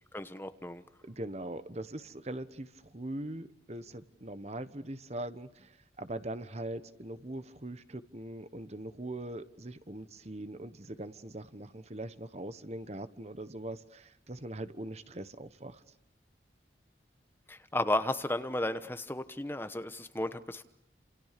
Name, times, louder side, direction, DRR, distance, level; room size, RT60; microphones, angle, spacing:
voice 1, 0.1-0.8 17.5-20.6, left 1 dB, 10° left, 10 dB, 1.1 m, -33 dB
voice 2, 1.0-15.8, right 1 dB, 35° right, 12 dB, 1.3 m, -41 dB
30.0 x 28.5 x 6.7 m, 0.74 s
head